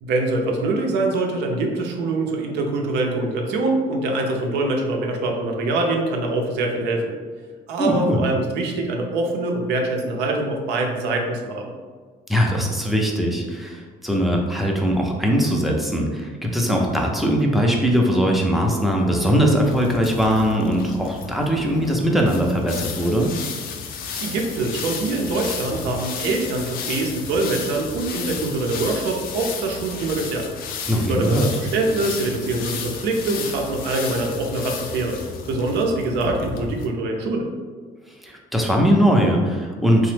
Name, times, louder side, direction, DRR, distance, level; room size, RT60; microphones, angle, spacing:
voice 1, 0.0-7.1 7.7-11.7 24.2-30.5 30.9-35.2 35.5-37.5, right 2 dB, 85° right, 2 dB, 0.5 m, -24 dB
voice 2, 7.8-8.2 12.3-23.3 30.9-31.5 38.2-40.1, equal, ahead, 0 dB, 0.4 m, -20 dB
sound 1, 19.1-36.9, left 6 dB, 60° left, 0.4 m, -33 dB
2.9 x 2.0 x 3.2 m, 1.5 s
cardioid pair, 110°, 17 cm